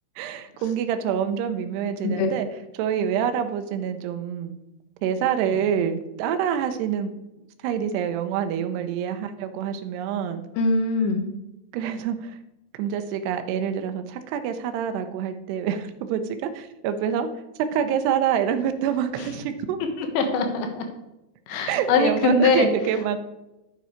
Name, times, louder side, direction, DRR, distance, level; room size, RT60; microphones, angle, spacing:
voice 1, 0.2-2.5 2.7-4.5 5.0-7.1 7.6-10.4 11.7-12.4 12.7-17.3 17.7-19.8 21.7-23.2, right 8 dB, 75° right, 8 dB, 2.7 m, -26 dB
voice 2, 10.6-11.2 20.0-20.8 21.5-22.7, left 3 dB, 75° left, 5 dB, 3.4 m, -22 dB
9.9 x 8.1 x 4.4 m, 0.95 s
omnidirectional pair, 5.2 m